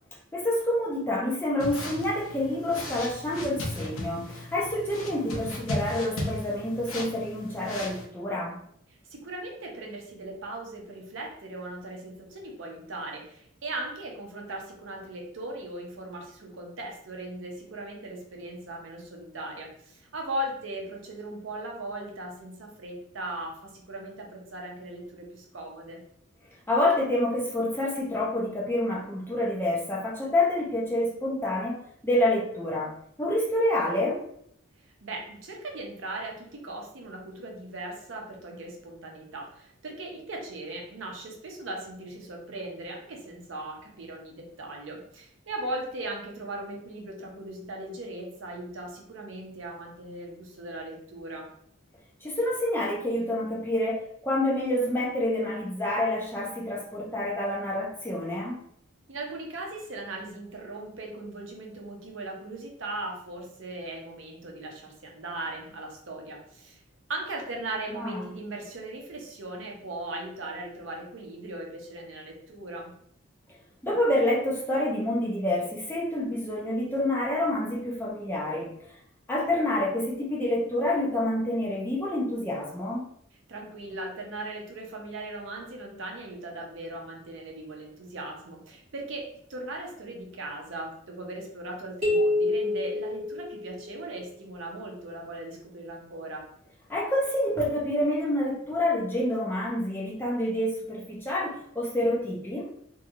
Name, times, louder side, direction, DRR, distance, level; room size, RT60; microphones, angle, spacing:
voice 1, 0.3-8.6 26.7-32.9 33.2-34.2 52.2-58.6 67.9-68.2 73.8-78.7 79.3-83.1 96.9-102.7, left 1 dB, 10° left, -4 dB, 0.6 m, -28 dB
sound 1, 1.6-8.0, left 1 dB, 80° left, 0.6 m, -36 dB
voice 2, 9.1-26.0 35.0-51.5 59.1-66.8 67.1-72.9 83.5-96.5, right 2 dB, 65° right, 0 dB, 0.6 m, -38 dB
sound 2, 92.0-94.0, left 2 dB, 35° right, 1.2 m, -27 dB
2.8 x 2.7 x 2.5 m, 0.68 s
head